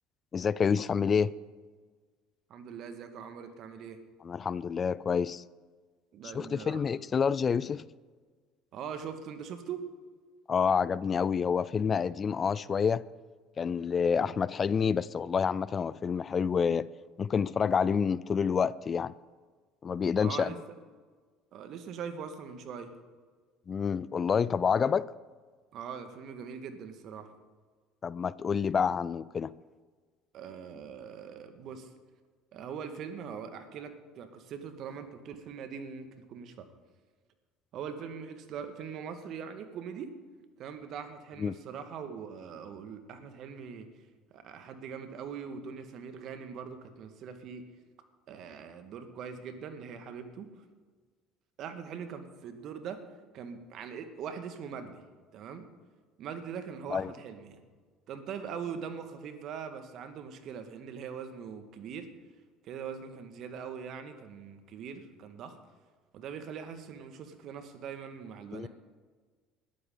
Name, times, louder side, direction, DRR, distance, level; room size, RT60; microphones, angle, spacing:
voice 1, 0.3-1.3 4.2-5.4 6.3-7.8 10.5-13.0 13.6-16.9 17.2-19.1 19.8-20.5 23.7-25.1 28.0-29.5 41.4-41.6 56.9-57.1 68.5-68.7, left 6 dB, 35° left, 0.4 m, -28 dB
voice 2, 2.5-4.0 6.1-6.8 8.7-9.8 20.2-20.8 21.5-22.9 25.7-27.3 30.3-31.9 32.5-36.7 37.7-40.1 40.6-43.9 44.3-47.6 48.3-50.5 51.6-53.0 53.3-55.0 55.3-55.7 56.2-57.6 58.1-62.1 62.6-65.6 66.1-68.7, right 7 dB, 55° right, 1.9 m, -42 dB
20.5 x 14.0 x 4.0 m
hypercardioid pair, 65°, 0 cm